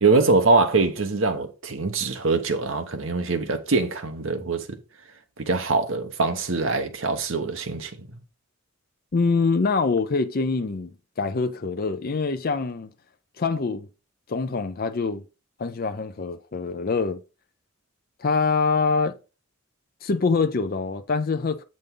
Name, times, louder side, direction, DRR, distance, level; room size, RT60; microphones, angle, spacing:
voice 1, 0.0-4.8 5.4-8.1, right 3 dB, 65° right, 1.1 m, -23 dB
voice 2, 9.1-10.9 11.2-12.9 13.4-13.9 14.3-15.2 15.6-17.2 18.2-19.1 20.0-21.6, left 4 dB, 45° left, 0.5 m, -24 dB
7.9 x 5.3 x 3.8 m
head